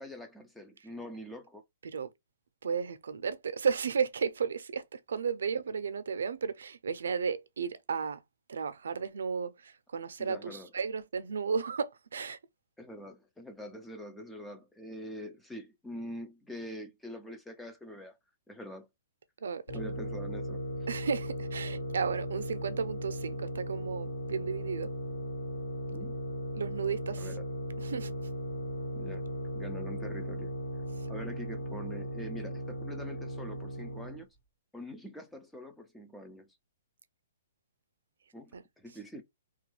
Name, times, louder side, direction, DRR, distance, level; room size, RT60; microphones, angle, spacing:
voice 1, 0.0-1.6 10.2-10.7 12.8-18.2 18.5-18.9 19.7-20.6 25.9-26.1 27.2-27.5 29.0-29.3 29.5-30.6 31.1-34.3 34.7-36.5 38.3-39.2, equal, 5° left, 0.3 m, -44 dB
voice 2, 2.6-8.2 8.5-12.4 19.4-19.8 20.9-24.9 26.6-27.3 27.8-28.1 38.5-38.6, right 6 dB, 85° right, 0.5 m, -34 dB
sound 1, 19.7-34.2, equal, 65° left, 1.9 m, -37 dB
2.9 x 2.3 x 3.1 m
hypercardioid pair, 175°, 0 cm